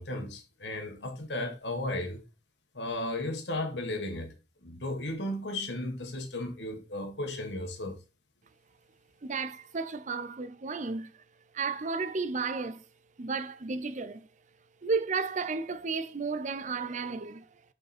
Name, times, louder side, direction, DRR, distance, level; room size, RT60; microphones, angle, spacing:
voice 1, 0.0-2.2 2.7-4.3 4.6-8.0, left 1 dB, 75° left, 1.6 m, -35 dB
voice 2, 9.2-11.2 11.5-12.9 13.2-14.3 14.8-17.5, right 4 dB, 45° right, 0.6 m, -33 dB
6.9 x 5.2 x 4.2 m
head